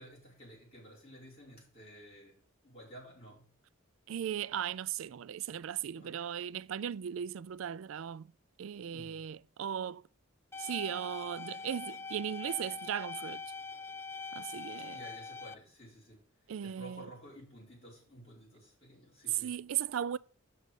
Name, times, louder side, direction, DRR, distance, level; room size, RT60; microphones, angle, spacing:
voice 1, 0.0-3.5 5.9-6.2 8.9-9.3 14.9-16.2 16.6-19.6, equal, 30° left, 5.0 m, -53 dB
voice 2, 4.1-8.3 8.6-10.0 10.6-13.4 14.4-15.0 16.5-17.0 19.4-20.2, right 9 dB, 75° right, 0.3 m, -37 dB
sound 1, 10.5-15.5, left 4 dB, 10° left, 0.4 m, -43 dB
6.5 x 6.2 x 6.7 m
head